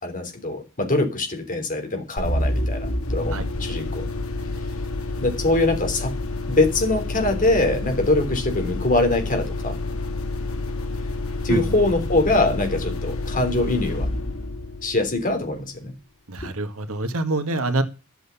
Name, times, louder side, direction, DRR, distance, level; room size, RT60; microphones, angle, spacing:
voice 1, 0.0-4.1 5.2-6.1 6.5-9.8 11.4-14.1 14.8-15.9 16.4-16.5, left 2 dB, 40° left, 5 dB, 3.4 m, -23 dB
sound 1, 2.2-15.6, left 2 dB, 75° left, 1.9 m, -28 dB
voice 2, 16.3-17.8, right 2 dB, 75° right, 8 dB, 1.7 m, -25 dB
11.5 x 8.0 x 7.0 m, 0.31 s
head